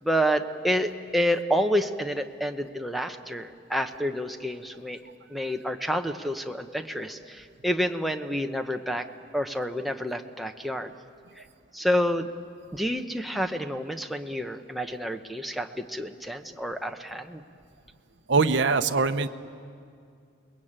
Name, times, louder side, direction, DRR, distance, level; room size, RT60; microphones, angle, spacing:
voice 1, 0.0-5.0 5.3-9.1 9.3-10.9 11.4-11.5 11.7-12.3 12.7-17.4, equal, ahead, 4 dB, 0.9 m, -29 dB
voice 2, 18.3-19.3, right 4 dB, 60° right, 7 dB, 0.8 m, -22 dB
29.5 x 21.0 x 8.9 m, 2.3 s
head